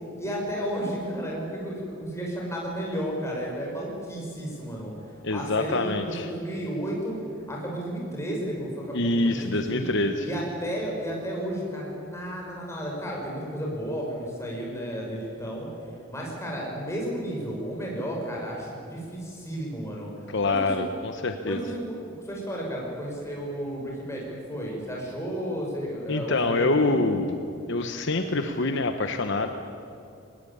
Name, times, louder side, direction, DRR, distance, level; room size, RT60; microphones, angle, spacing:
voice 1, 0.2-4.9 5.3-9.9 10.2-15.7 16.1-20.1 20.4-20.9 21.4-27.2, equal, 15° left, -2 dB, 6.0 m, -33 dB
voice 2, 5.2-6.3 8.9-10.3 20.3-21.6 26.1-27.4 27.7-29.5, left 2 dB, 55° left, 7 dB, 1.0 m, -25 dB
21.5 x 19.5 x 8.8 m, 2.6 s
head